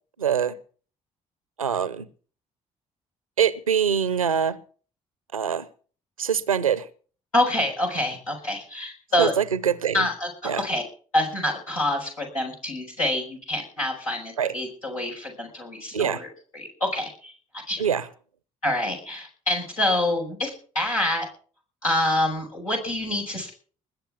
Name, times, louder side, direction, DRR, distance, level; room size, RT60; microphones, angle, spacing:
voice 1, 0.2-0.6 1.6-2.1 3.4-4.6 5.3-5.7 6.2-6.9 9.2-10.1 10.4-10.6 14.4-14.5 15.9-16.2 17.8-18.1, right 8 dB, 85° right, 0.7 m, -24 dB
voice 2, 7.3-9.3 9.9-10.8 11.1-16.3 16.5-17.8 18.6-21.3 21.8-23.5, left 1 dB, 85° left, 6.1 m, -26 dB
21.0 x 7.1 x 7.2 m
figure-of-eight pair, 45°, 17 cm